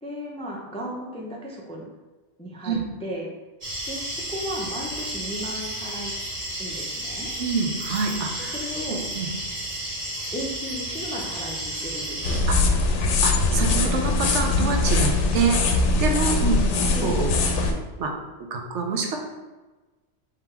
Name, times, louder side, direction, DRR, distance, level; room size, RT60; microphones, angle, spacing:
voice 1, 0.0-1.9 2.4-3.3 3.9-6.1 6.6-7.3 8.4-9.1 10.3-12.5 16.9-17.2, equal, 10° left, -2 dB, 0.4 m, -35 dB
sound 1, 3.6-12.4, right 1 dB, 60° right, 1.9 m, -32 dB
voice 2, 7.4-8.5 8.9-9.3 12.5-12.6 13.2-15.6 16.0-16.6 17.0-17.4 18.0-18.1 18.5-19.2, right 4 dB, 80° right, 2 dB, 1.0 m, -26 dB
sound 2, 12.2-17.7, left 3 dB, 90° left, 0.9 m, -21 dB
3.7 x 2.9 x 4.4 m, 1.2 s
omnidirectional pair, 1.2 m